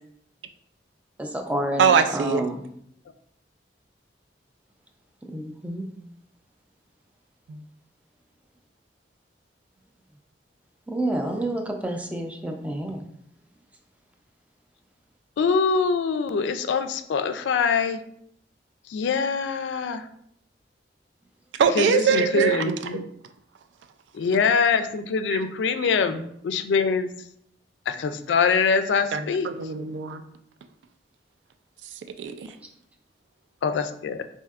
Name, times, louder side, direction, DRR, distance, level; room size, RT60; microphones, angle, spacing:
voice 1, 1.2-2.6 5.3-5.8 10.9-13.0, right 1 dB, 10° right, 3 dB, 0.4 m, -29 dB
voice 2, 1.8-2.4 7.5-7.6 21.6-23.0 25.3-25.4 29.1-30.2 32.2-32.5, right 6 dB, 85° right, 8 dB, 0.3 m, -22 dB
voice 3, 15.4-18.0 18.9-20.0 21.7-23.0 24.1-27.1 27.9-29.5 33.6-34.2, left 5 dB, 85° left, 10 dB, 0.3 m, -24 dB
4.4 x 2.6 x 2.4 m, 0.70 s
head